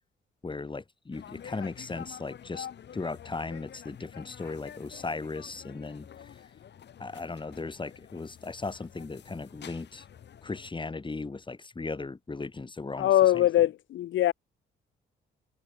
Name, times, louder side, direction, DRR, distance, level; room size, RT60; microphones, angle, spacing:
voice 1, 0.4-2.7 2.9-6.1 7.0-10.0 10.4-13.7, left 3 dB, 25° left, 4.9 m, -37 dB
sound 1, 1.1-10.7, left 9 dB, 60° left, 5.6 m, -48 dB
voice 2, 13.0-14.3, left 13 dB, 75° left, 1.7 m, -22 dB
cardioid pair, 90°, 20 cm